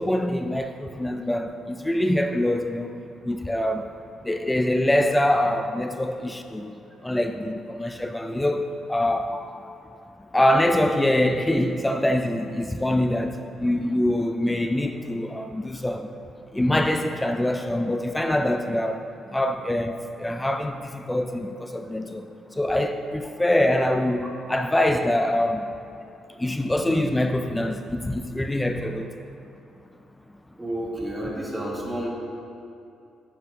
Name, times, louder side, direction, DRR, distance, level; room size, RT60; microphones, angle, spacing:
voice 1, 0.0-3.0 3.2-3.9 4.2-9.4 10.3-16.2 16.5-25.7 26.4-29.2, left 1 dB, 10° left, 0.4 m, -24 dB
voice 2, 30.6-32.1, right 1 dB, 15° right, 1.7 m, -30 dB
10.0 x 4.3 x 5.3 m
cardioid pair, 90°, 0 cm